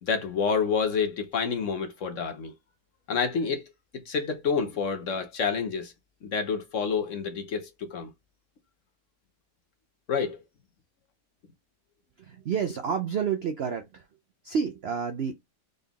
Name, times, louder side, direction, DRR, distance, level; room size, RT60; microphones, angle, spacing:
voice 1, 0.0-2.5 3.1-3.7 3.9-5.9 6.2-8.1 10.1-10.4, left 5 dB, 55° left, 1.0 m, -28 dB
voice 2, 12.2-14.1 14.4-15.3, right 7 dB, 65° right, 0.6 m, -29 dB
4.0 x 3.8 x 3.5 m
omnidirectional pair, 1.8 m